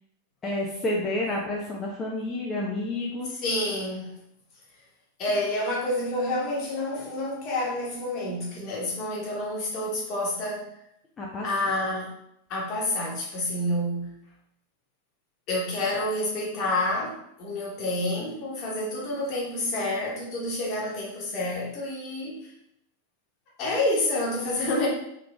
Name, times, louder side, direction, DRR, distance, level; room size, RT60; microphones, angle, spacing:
voice 1, 0.4-3.4 11.2-11.5, left 1 dB, 20° left, -3 dB, 0.5 m, -30 dB
voice 2, 3.4-4.1 5.2-10.7 11.4-12.1 12.5-14.1 15.5-22.5 23.6-24.9, left 1 dB, 40° left, -4 dB, 1.2 m, -28 dB
3.4 x 3.3 x 2.4 m, 0.76 s
figure-of-eight pair, 90°, 0 cm